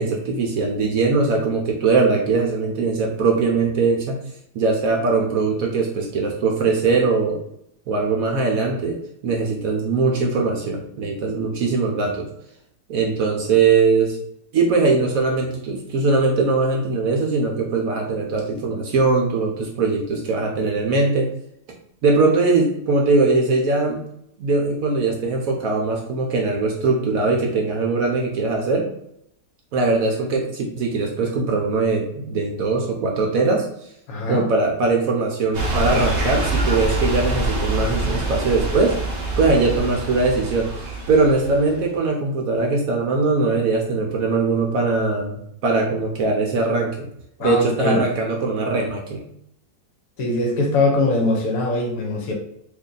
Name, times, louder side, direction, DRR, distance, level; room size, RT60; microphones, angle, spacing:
voice 1, 0.0-4.2 4.5-7.4 7.9-9.0 9.2-12.3 12.9-14.2 14.5-21.3 22.0-24.0 24.4-28.9 29.7-33.7 34.3-39.0 39.4-47.1 47.4-49.2, right 3 dB, 70° right, 1 dB, 0.9 m, -21 dB
voice 2, 34.1-34.5 47.4-48.0 50.2-52.3, left 2 dB, 65° left, 1 dB, 1.1 m, -21 dB
sound 1, 35.5-41.7, right 2 dB, 45° right, 0.5 m, -25 dB
2.8 x 2.6 x 3.7 m, 0.74 s
omnidirectional pair, 1.8 m